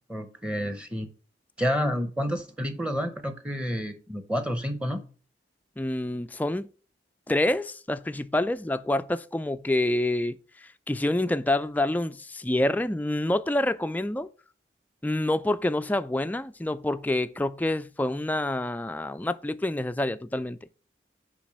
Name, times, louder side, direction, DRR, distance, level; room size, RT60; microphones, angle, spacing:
voice 1, 0.1-1.1 1.6-5.0, equal, 5° right, 0.8 m, -29 dB
voice 2, 5.8-6.7 7.3-14.3 15.0-20.6, left 1 dB, 10° left, 0.3 m, -27 dB
7.1 x 5.2 x 6.3 m
head